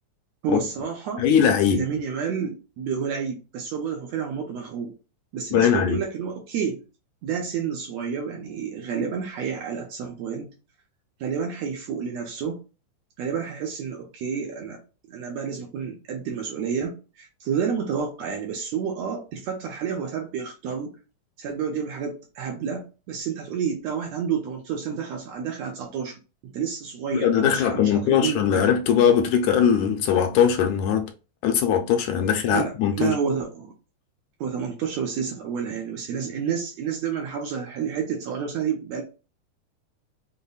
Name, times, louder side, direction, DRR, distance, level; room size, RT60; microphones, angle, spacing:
voice 1, 0.4-1.3 1.7-4.9 5.3-6.8 7.2-10.5 11.2-12.6 13.2-14.8 15.1-21.0 21.4-28.6 32.5-33.7 34.4-39.0, right 7 dB, 75° right, 1.6 m, -30 dB
voice 2, 1.2-1.9 5.5-6.0 27.1-31.1 31.4-33.2, left 8 dB, 80° left, 1.8 m, -20 dB
5.3 x 2.1 x 2.3 m
omnidirectional pair, 3.5 m